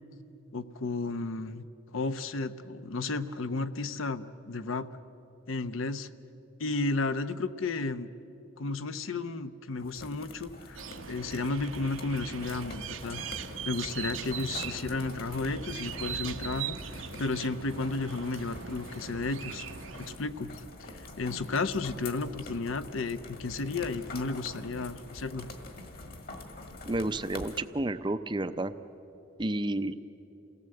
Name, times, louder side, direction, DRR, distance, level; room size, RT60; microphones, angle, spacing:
voice 1, 0.5-1.6 1.9-4.9 5.5-6.1 6.6-8.1 8.6-10.8 11.1-13.2 13.6-19.7 20.0-25.5, left 3 dB, 75° left, 12 dB, 0.8 m, -33 dB
sound 1, 9.8-27.6, left 2 dB, 45° left, 1.8 m, -45 dB
sound 2, 10.8-20.2, right 8 dB, 75° right, 0.9 m, -40 dB
voice 2, 26.9-28.7 29.4-30.0, right 2 dB, 20° right, 11 dB, 0.5 m, -31 dB
28.5 x 17.5 x 7.8 m, 3.0 s
head